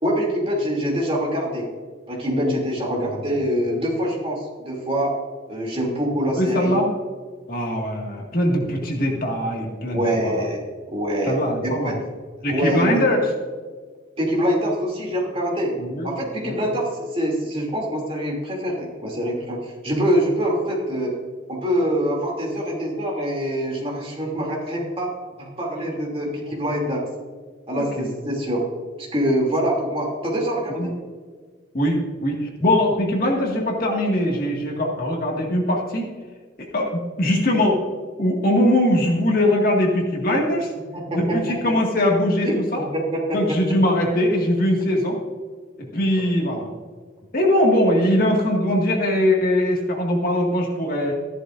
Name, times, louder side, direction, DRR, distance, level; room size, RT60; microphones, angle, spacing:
voice 1, 0.0-1.7 2.1-5.2 5.5-6.8 9.9-10.6 10.9-12.0 12.4-13.0 14.2-15.7 16.0-21.2 21.5-25.1 25.4-27.1 27.7-28.7 29.0-30.9 40.9-41.4 42.4-42.6 42.9-43.6, equal, 30° right, -2 dB, 2.8 m, -24 dB
voice 2, 2.3-2.6 2.9-3.1 6.3-6.9 7.5-10.4 11.2-11.9 12.4-13.2 15.8-16.1 16.4-16.6 27.8-28.1 30.7-30.9 31.7-36.1 36.6-37.9 38.2-40.7 41.1-42.8 43.3-45.2 45.9-46.7 47.3-51.1, left 1 dB, 50° left, 0 dB, 1.9 m, -21 dB
14.0 x 11.5 x 2.6 m, 1.5 s
head